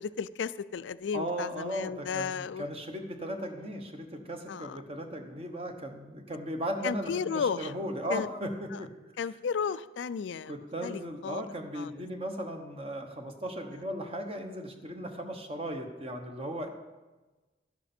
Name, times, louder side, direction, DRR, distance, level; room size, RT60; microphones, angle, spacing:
voice 1, 0.0-2.6 4.5-4.8 6.8-7.7 8.1-8.3 8.7-8.8 9.2-10.6 10.8-11.4 11.8-11.9, left 6 dB, 85° left, 16 dB, 0.4 m, -34 dB
voice 2, 1.1-8.9 10.4-16.7, equal, 35° right, 4 dB, 1.1 m, -37 dB
12.0 x 11.0 x 4.3 m, 1.2 s
head